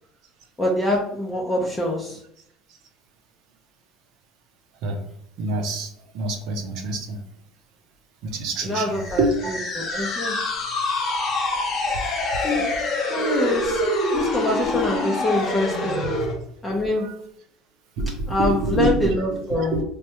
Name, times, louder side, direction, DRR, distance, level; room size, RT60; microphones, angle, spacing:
voice 1, 0.6-2.2 8.6-9.2 9.7-10.3 12.4-12.7 13.1-13.8 14.1-16.0 16.6-17.0 18.3-19.8, left 1 dB, 15° left, -3 dB, 0.6 m, -24 dB
voice 2, 5.4-7.2 8.2-9.5 9.9-10.0 11.9-12.0 13.8-13.9 16.9-17.2 18.0-19.8, right 2 dB, 65° right, 3 dB, 0.7 m, -26 dB
sound 1, 8.9-16.4, left 2 dB, 50° left, 0.8 m, -25 dB
3.1 x 2.2 x 2.9 m, 0.72 s
supercardioid pair, 90°, 0 cm